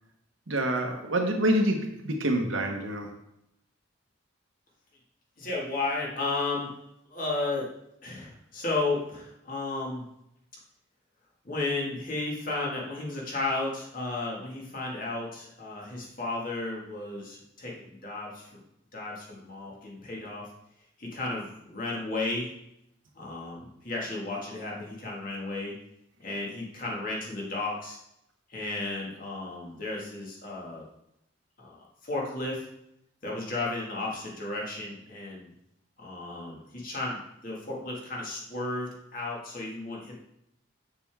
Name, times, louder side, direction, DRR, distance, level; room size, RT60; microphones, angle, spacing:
voice 1, 0.5-3.1, right 1 dB, 85° right, 4 dB, 1.2 m, -27 dB
voice 2, 5.4-6.7 7.1-7.7 8.0-10.1 11.4-18.6 18.9-20.5 21.0-22.5 23.2-25.7 26.2-28.0 28.5-30.8 31.6-32.7 33.2-35.5 36.0-37.2 37.4-40.2, left 2 dB, 45° left, -3 dB, 2.0 m, -33 dB
6.9 x 6.8 x 3.5 m, 0.80 s
head